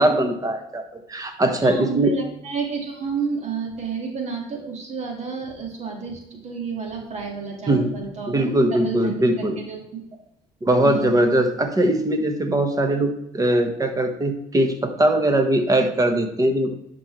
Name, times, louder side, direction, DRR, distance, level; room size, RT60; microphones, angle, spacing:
voice 1, 0.0-2.1 7.7-7.9 8.3-9.5 10.6-16.7, right 1 dB, 25° right, 6 dB, 1.5 m, -21 dB
voice 2, 1.6-10.0 10.8-11.4, right 5 dB, 50° right, 1 dB, 2.3 m, -30 dB
11.0 x 4.5 x 3.3 m, 0.78 s
supercardioid pair, 80°, 15 cm